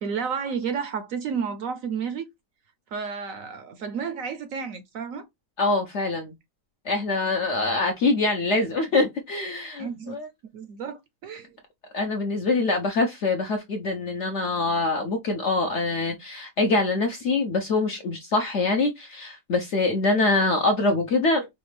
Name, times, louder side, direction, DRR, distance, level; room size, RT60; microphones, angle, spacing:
voice 1, 0.0-2.2 2.9-5.2 9.8-10.2 10.5-11.5, right 6 dB, 65° right, 0.9 m, -31 dB
voice 2, 5.6-6.3 6.8-10.3 11.9-21.5, left 3 dB, 60° left, 0.7 m, -24 dB
5.0 x 2.4 x 3.2 m
omnidirectional pair, 1.8 m